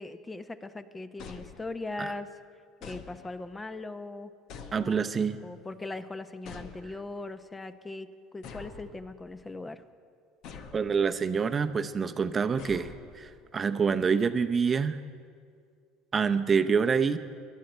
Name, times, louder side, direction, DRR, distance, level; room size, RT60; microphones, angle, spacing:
voice 1, 0.0-2.3 2.8-4.3 4.7-5.0 5.4-9.8, left 2 dB, 15° left, 11 dB, 0.9 m, -39 dB
sound 1, 1.2-2.1 2.8-3.6 4.5-5.4 6.4-7.3 8.4-9.5 10.4-11.2 12.6-13.5, left 5 dB, 60° left, 1.2 m, -47 dB
voice 2, 4.7-5.4 10.7-15.0 16.1-17.2, right 5 dB, 30° right, 10 dB, 0.8 m, -26 dB
23.0 x 11.5 x 4.4 m, 2.2 s
hypercardioid pair, 70°, 0 cm